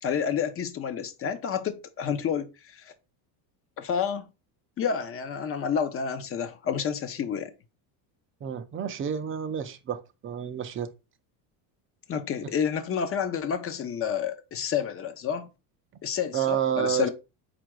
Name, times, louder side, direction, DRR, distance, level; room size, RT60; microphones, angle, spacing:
voice 1, 0.0-2.9 3.8-4.3 4.8-7.5 12.1-15.5 16.0-17.1, left 7 dB, 30° left, 0.6 m, -29 dB
voice 2, 8.4-10.9 12.4-12.5 16.3-17.1, right 9 dB, 25° right, 0.5 m, -29 dB
4.5 x 2.5 x 4.4 m
supercardioid pair, 125°, 48 cm